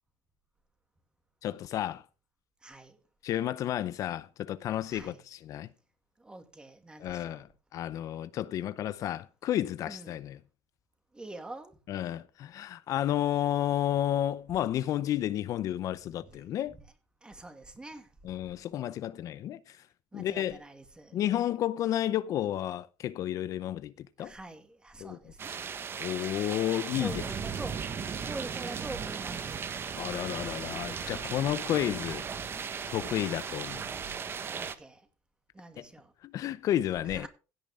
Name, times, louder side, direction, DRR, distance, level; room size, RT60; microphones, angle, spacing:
voice 1, 1.4-2.0 3.2-5.7 7.0-7.5 7.7-10.4 11.9-16.8 18.2-19.8 20.1-20.6 21.1-24.3 25.0-25.2 26.0-27.2 30.0-32.3 32.9-33.8 35.8-35.9 36.2-37.3, left 12 dB, 55° left, 0.6 m, -31 dB
voice 2, 2.6-3.0 4.9-5.2 6.2-7.5 9.8-10.2 11.1-11.8 16.1-16.4 16.7-16.8 17.2-18.1 20.1-21.2 24.2-25.6 27.0-29.6 32.9-33.3 34.5-35.1 35.5-36.1 37.0-37.3, right 2 dB, 10° right, 2.3 m, -45 dB
sound 1, 25.4-34.7, right 6 dB, 35° right, 1.3 m, -37 dB
16.5 x 9.0 x 3.7 m
cardioid pair, 115°, 7 cm